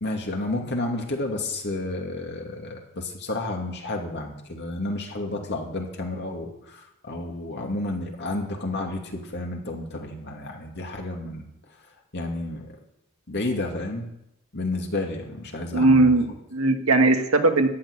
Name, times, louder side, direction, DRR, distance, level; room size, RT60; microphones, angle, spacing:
voice 1, 0.0-11.5 12.1-12.7 13.3-14.1 14.5-16.1, left 2 dB, 55° left, 1 dB, 2.6 m, -31 dB
voice 2, 15.7-17.7, right 2 dB, 85° right, 6 dB, 1.6 m, -19 dB
14.5 x 6.8 x 9.9 m, 0.83 s
head